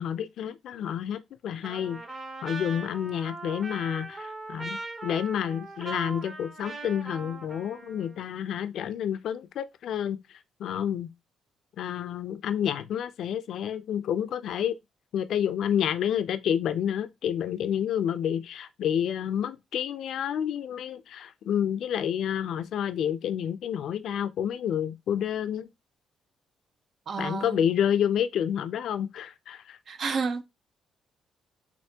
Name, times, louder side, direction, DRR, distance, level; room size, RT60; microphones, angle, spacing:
voice 1, 0.0-2.0 2.4-10.2 10.6-11.1 11.8-14.8 15.1-25.7 27.2-29.8, left 9 dB, 70° left, 0.5 m, -29 dB
Trumpet, 1.6-8.2, right 3 dB, 35° right, 1.3 m, -40 dB
voice 2, 27.1-27.6 29.9-30.4, right 4 dB, 55° right, 0.7 m, -30 dB
6.7 x 2.6 x 2.8 m
cardioid pair, 90°, 0 cm